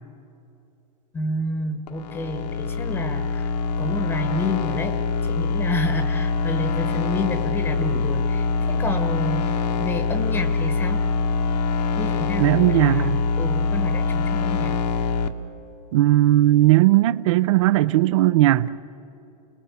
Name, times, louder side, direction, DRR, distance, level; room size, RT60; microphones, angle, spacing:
voice 1, 1.1-4.9 5.2-11.0 12.0-14.7, left 2 dB, 10° left, 1.0 m, -29 dB
sound 1, 1.9-15.3, left 4 dB, 80° left, 1.7 m, -24 dB
voice 2, 12.4-13.2 15.9-18.7, right 15 dB, 50° right, 0.6 m, -17 dB
28.5 x 20.0 x 8.1 m
supercardioid pair, 165°, 20 cm